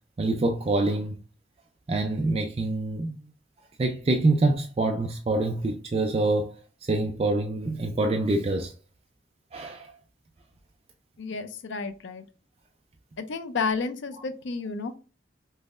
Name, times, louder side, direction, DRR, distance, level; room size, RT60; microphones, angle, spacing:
voice 1, 0.2-1.2 1.9-3.2 3.8-8.7 9.5-9.9, right 2 dB, 30° right, 0.3 m, -26 dB
voice 2, 11.2-12.2 13.2-15.0, left 4 dB, 85° left, 0.5 m, -31 dB
5.3 x 2.0 x 2.4 m
head